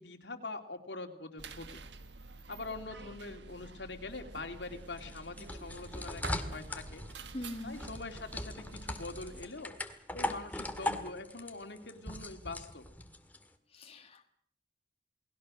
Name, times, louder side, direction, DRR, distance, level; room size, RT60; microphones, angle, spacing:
voice 1, 0.0-1.8 2.5-7.0 7.6-9.7 10.1-12.9, left 3 dB, 80° left, 5 dB, 2.9 m, -44 dB
sound 1, 1.4-9.5, right 3 dB, 80° right, 1.6 m, -49 dB
sound 2, 4.7-13.4, left 1 dB, 10° left, 1.9 m, -40 dB
voice 2, 7.3-7.8 13.7-14.3, left 1 dB, 35° left, 4 dB, 1.6 m, -42 dB
29.0 x 20.0 x 6.4 m, 0.63 s
head